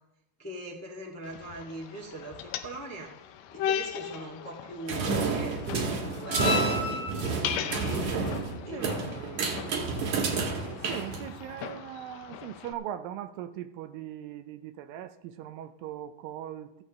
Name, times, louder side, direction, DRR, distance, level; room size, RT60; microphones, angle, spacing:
voice 1, 0.4-3.1 3.5-7.1 7.9-8.3 8.6-9.5 10.5-10.7, right 1 dB, 10° left, 0.8 m, -41 dB
sound 1, 1.2-12.7, left 7 dB, 80° left, 2.5 m, -37 dB
sound 2, 4.9-11.6, right 4 dB, 55° right, 2.6 m, -30 dB
voice 2, 10.9-16.8, right 11 dB, 80° right, 2.3 m, -39 dB
15.0 x 13.5 x 3.2 m
omnidirectional pair, 4.2 m